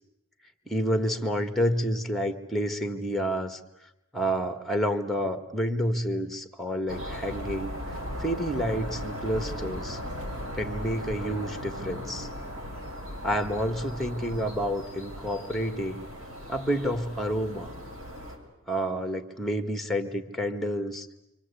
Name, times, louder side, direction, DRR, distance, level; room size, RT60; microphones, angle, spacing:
voice 1, 0.7-3.6 4.1-7.8 8.2-10.0 10.5-12.3 13.2-16.1 16.5-17.7 18.7-21.1, equal, ahead, 6 dB, 1.7 m, -29 dB
sound 1, 6.9-18.4, equal, 85° right, 6.8 m, -37 dB
28.0 x 25.5 x 8.4 m, 0.87 s
head